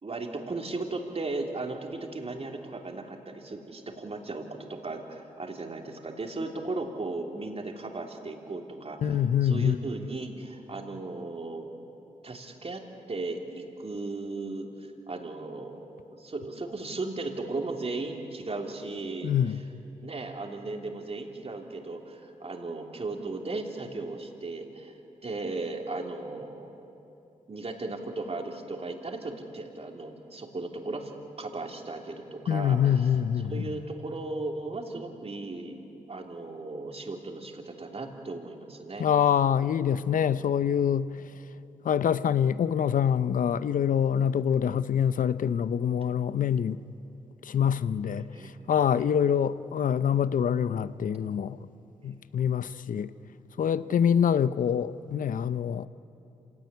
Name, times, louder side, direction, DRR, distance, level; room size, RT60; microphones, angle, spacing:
voice 1, 0.0-11.7 12.2-12.8 13.1-15.8 16.1-19.6 20.0-24.9 25.2-26.8 27.5-31.1 31.4-33.1 33.5-35.8 36.1-39.1 40.2-40.5 41.2-41.3 48.3-48.6 49.0-49.1 52.0-52.2 53.6-54.3, right 3 dB, 45° right, 3.2 m, -36 dB
voice 2, 9.0-9.8 19.2-19.6 32.5-33.7 39.0-41.1 41.8-46.8 47.4-48.3 48.7-51.6 52.0-53.1 53.6-55.9, left 8 dB, 70° left, 0.7 m, -25 dB
26.0 x 17.5 x 9.7 m
supercardioid pair, 50°, 14 cm